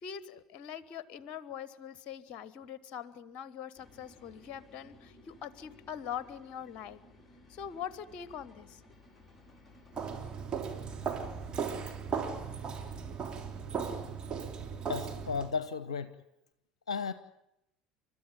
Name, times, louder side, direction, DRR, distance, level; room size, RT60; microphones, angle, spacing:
voice 1, 0.0-7.0 7.5-8.8, left 8 dB, 45° left, 16 dB, 1.2 m, -43 dB
sound 1, 3.7-13.2, left 2 dB, 5° left, 5.7 m, -58 dB
Walk footsteps, 9.9-15.5, right 6 dB, 30° right, 3.2 m, -37 dB
voice 2, 14.9-16.2 16.9-17.1, left 5 dB, 75° left, 12 dB, 0.7 m, -34 dB
30.0 x 13.5 x 9.0 m, 0.84 s
figure-of-eight pair, 65°, 3 cm